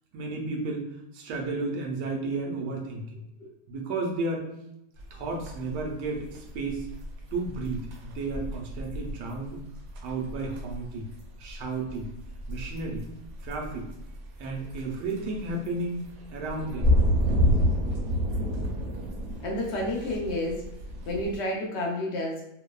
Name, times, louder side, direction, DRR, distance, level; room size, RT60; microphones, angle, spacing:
voice 1, 0.1-3.2 3.7-4.5 5.1-6.9 7.3-9.6 10.0-11.1 11.4-12.1 12.5-13.1 13.4-13.9 14.4-16.0 16.3-16.9, right 3 dB, 90° right, 0 dB, 1.2 m, -33 dB
sound 1, 5.0-21.4, equal, 70° right, 0.9 m, -30 dB
voice 2, 19.4-20.6 21.1-22.4, left 1 dB, 80° left, -2 dB, 0.6 m, -30 dB
3.0 x 2.0 x 2.2 m, 0.85 s
omnidirectional pair, 1.8 m